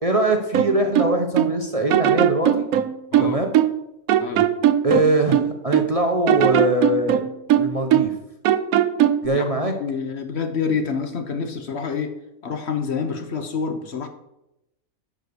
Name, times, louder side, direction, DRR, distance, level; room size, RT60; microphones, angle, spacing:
voice 1, 0.0-2.7 3.2-3.5 4.8-7.3 7.6-8.2 9.2-9.7, right 1 dB, 30° right, 3 dB, 0.9 m, -22 dB
sound 1, 0.5-1.6 1.9-3.8 4.1-5.9 6.3-8.2 8.5-9.3, right 11 dB, 85° right, 1.1 m, -19 dB
voice 2, 9.3-12.2 12.4-14.1, left 5 dB, 55° left, 7 dB, 1.1 m, -27 dB
11.0 x 5.1 x 6.8 m, 0.89 s
omnidirectional pair, 1.4 m